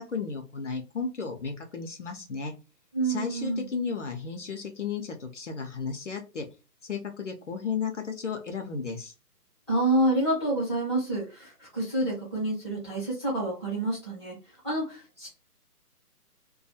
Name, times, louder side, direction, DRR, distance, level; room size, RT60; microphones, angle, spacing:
voice 1, 0.0-2.5 3.0-6.5 6.8-9.1, left 5 dB, 50° left, 4 dB, 0.6 m, -34 dB
voice 2, 2.9-3.6 9.7-14.3 14.6-15.3, right 1 dB, 20° right, -6 dB, 0.6 m, -28 dB
2.3 x 2.2 x 2.7 m, 0.30 s
hypercardioid pair, 165°, 47 cm